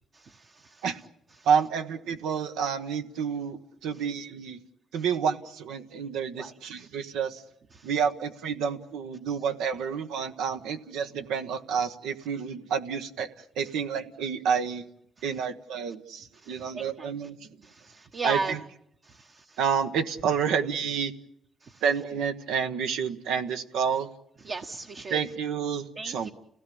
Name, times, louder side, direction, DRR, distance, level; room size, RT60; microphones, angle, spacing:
voice 1, 1.5-4.6 4.9-7.4 7.8-13.3 13.6-14.9 15.2-17.4 18.2-18.6 19.6-21.1 21.8-24.1 25.1-26.3, right 7 dB, 90° right, 7 dB, 1.2 m, -29 dB
voice 2, 16.5-17.1 17.9-18.5 24.4-25.2 26.0-26.3, right 4 dB, 50° right, 4 dB, 1.2 m, -33 dB
29.5 x 17.0 x 8.7 m, 0.74 s
cardioid pair, 90°, 0 cm